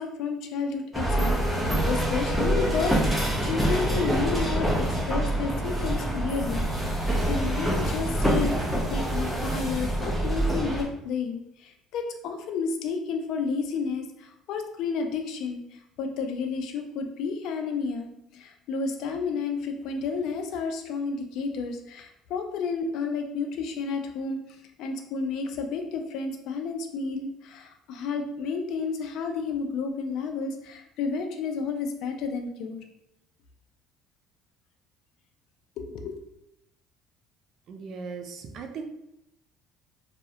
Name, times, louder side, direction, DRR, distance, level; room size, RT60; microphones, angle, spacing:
voice 1, 0.0-4.7 5.1-6.7 6.9-24.4 24.8-32.8 35.8-36.1, left 5 dB, 65° left, 5 dB, 0.3 m, -31 dB
sound 1, 0.9-10.8, right 1 dB, ahead, 0.6 m, -26 dB
voice 2, 37.7-38.8, right 5 dB, 50° right, 6 dB, 0.3 m, -38 dB
2.3 x 2.0 x 2.7 m, 0.81 s
cardioid pair, 120°, 0 cm